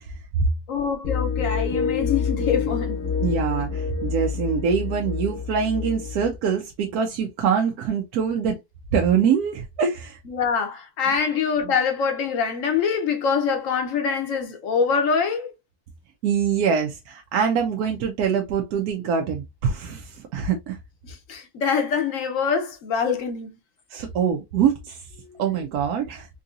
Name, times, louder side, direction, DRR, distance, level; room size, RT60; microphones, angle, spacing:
voice 1, 0.7-3.0 10.3-15.5 21.0-23.5 25.2-25.4, left 6 dB, 65° left, 1.0 m, -24 dB
sound 1, 1.0-6.4, left 6 dB, 40° left, 0.8 m, -27 dB
voice 2, 3.2-8.6 8.9-10.2 11.6-11.7 16.2-20.8 23.9-25.0 25.4-26.3, right 7 dB, 75° right, 1.1 m, -24 dB
3.7 x 2.7 x 2.3 m
omnidirectional pair, 1.6 m